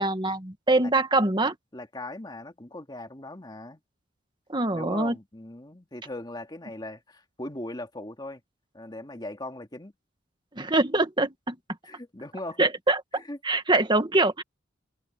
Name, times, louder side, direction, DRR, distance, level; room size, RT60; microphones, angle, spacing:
voice 1, 0.0-1.6 4.5-5.2 10.5-11.6 12.6-13.0 13.4-14.4, right 2 dB, 25° right, 1.7 m, -24 dB
voice 2, 1.7-3.8 4.7-8.4 8.7-9.9 11.8-12.7 13.1-13.4, left 1 dB, 25° left, 2.3 m, -39 dB
head